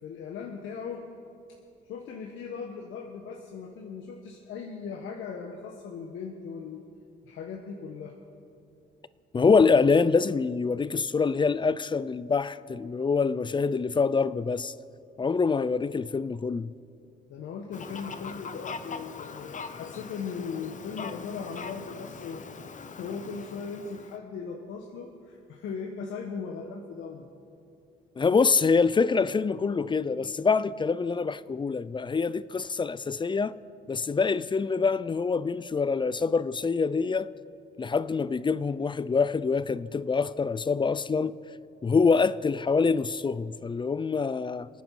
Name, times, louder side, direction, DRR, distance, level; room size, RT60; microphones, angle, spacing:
voice 1, 0.0-1.1 1.9-6.8 7.2-8.2 17.3-27.3, left 5 dB, 80° left, 1.2 m, -38 dB
voice 2, 9.3-14.7 15.2-16.7 28.2-33.5 33.9-37.3 37.8-41.4 41.8-44.7, left 4 dB, 25° left, 0.4 m, -25 dB
Fowl, 17.7-24.2, left 5 dB, 40° left, 0.9 m, -41 dB
27.0 x 9.4 x 4.7 m
cardioid pair, 90°, 20 cm